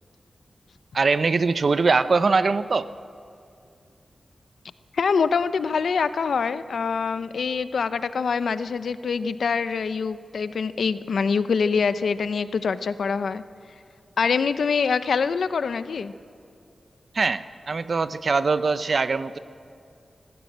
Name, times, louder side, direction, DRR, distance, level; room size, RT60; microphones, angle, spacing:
voice 1, 0.9-2.9 17.1-19.4, right 4 dB, 55° right, 13 dB, 0.7 m, -22 dB
voice 2, 4.9-13.4 14.2-16.1, left 5 dB, 85° left, 13 dB, 0.6 m, -24 dB
20.5 x 15.0 x 8.7 m, 2.5 s
wide cardioid pair, 95°, 0 cm